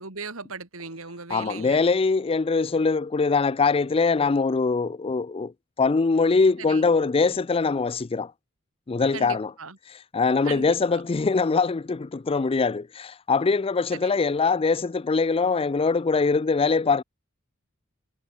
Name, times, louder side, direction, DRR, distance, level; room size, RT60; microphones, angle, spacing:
voice 1, 0.0-1.8 6.6-6.9 9.1-9.8 10.4-11.0 13.9-14.2, right 4 dB, 75° right, 3.0 m, -38 dB
voice 2, 1.3-5.5 5.8-8.3 8.9-9.5 10.1-17.0, left 4 dB, 25° left, 0.4 m, -22 dB
head